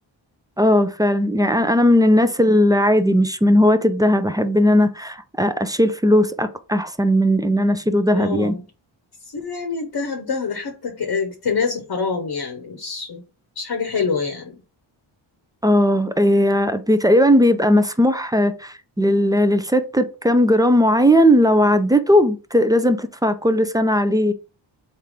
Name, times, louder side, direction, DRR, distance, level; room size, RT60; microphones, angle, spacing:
voice 1, 0.6-8.6 15.6-24.3, equal, 10° right, 0.4 m, -17 dB
voice 2, 8.1-8.7 9.3-13.2 13.6-14.6, left 5 dB, 50° left, 0.9 m, -26 dB
3.6 x 2.8 x 4.8 m
cardioid pair, 70°, 48 cm